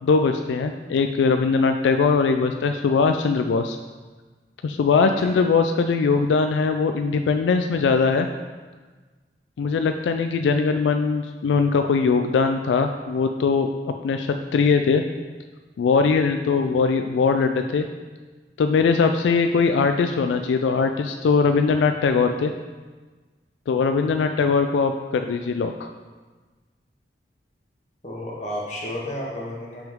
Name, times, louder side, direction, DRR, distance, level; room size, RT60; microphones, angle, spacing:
voice 1, 0.0-3.8 4.6-8.3 9.6-15.0 15.8-17.9 18.6-22.5 23.7-25.9, left 5 dB, 90° left, 6 dB, 0.3 m, -21 dB
voice 2, 28.0-29.9, left 1 dB, 40° left, -4 dB, 1.4 m, -32 dB
5.9 x 5.3 x 3.6 m, 1.3 s
head